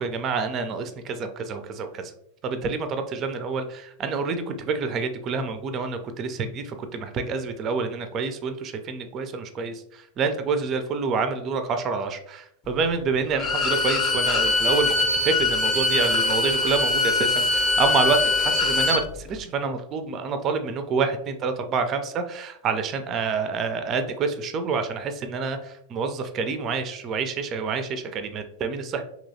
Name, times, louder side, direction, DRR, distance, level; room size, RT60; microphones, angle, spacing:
voice 1, 0.0-2.0 2.4-9.7 10.2-14.9 15.2-25.6 25.9-29.0, right 5 dB, 30° right, 8 dB, 0.3 m, -27 dB
Bowed string instrument, 13.3-19.0, left 2 dB, 25° left, 0.6 m, -22 dB
3.0 x 2.8 x 2.6 m, 0.72 s
figure-of-eight pair, 90°, 0 cm